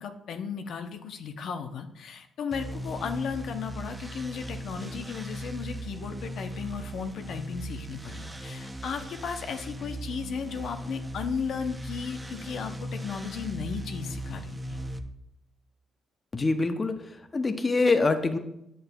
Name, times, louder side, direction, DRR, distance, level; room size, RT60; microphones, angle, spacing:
voice 1, 0.0-14.8, left 6 dB, 70° left, 6 dB, 0.6 m, -35 dB
sound 1, 2.5-15.0, right 1 dB, 15° right, 0.5 m, -38 dB
voice 2, 16.3-17.0 17.3-18.4, left 3 dB, 30° left, 7 dB, 0.5 m, -24 dB
8.7 x 6.5 x 2.2 m, 0.80 s
cardioid pair, 90°, 0 cm